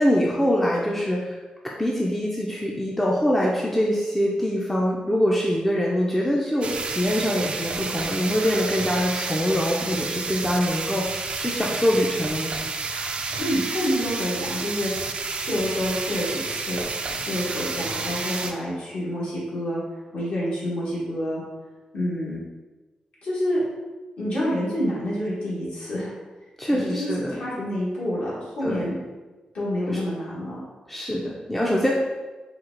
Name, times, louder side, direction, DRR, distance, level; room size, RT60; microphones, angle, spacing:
voice 1, 0.0-1.4 1.6-12.5 26.6-27.4 28.6-28.9 29.9-30.0 30.9-31.9, equal, 10° left, -3 dB, 0.4 m, -24 dB
sound 1, 6.6-18.5, right 4 dB, 50° right, 0.4 m, -30 dB
voice 2, 13.4-14.9 15.4-16.8 17.2-19.8 20.1-21.4 21.9-22.4 23.2-23.6 24.2-26.1 26.7-28.9 29.5-30.6, equal, 70° left, -8 dB, 1.4 m, -28 dB
4.4 x 2.4 x 3.8 m, 1.2 s
wide cardioid pair, 120°, 2 cm